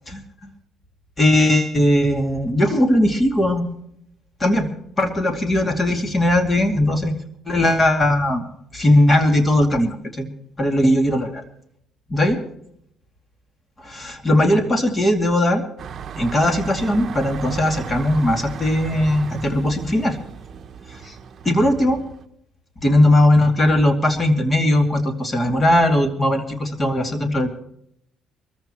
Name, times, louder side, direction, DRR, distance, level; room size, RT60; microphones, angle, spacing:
voice 1, 0.1-0.5 1.2-3.7 4.4-4.7 5.0-7.1 7.5-8.4 8.7-10.3 10.6-11.4 12.1-12.4 13.8-15.6 16.2-20.2 20.9-21.2 21.4-22.0 22.8-27.5, left 1 dB, 20° left, 5 dB, 2.6 m, -18 dB
sound 1, 15.8-22.2, right 7 dB, 45° right, 1.1 m, -35 dB
24.5 x 14.5 x 3.1 m, 0.72 s
cardioid pair, 130°, 0 cm